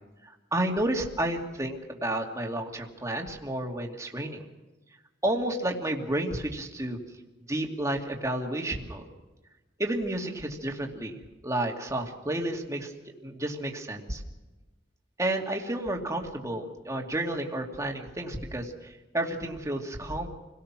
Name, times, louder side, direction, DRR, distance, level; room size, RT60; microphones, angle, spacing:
voice 1, 0.2-4.5 5.2-7.0 7.5-9.1 9.8-11.2 11.4-12.9 13.2-14.2 15.2-20.3, right 1 dB, 15° right, 1 dB, 2.6 m, -31 dB
28.0 x 18.0 x 6.2 m, 1.1 s
head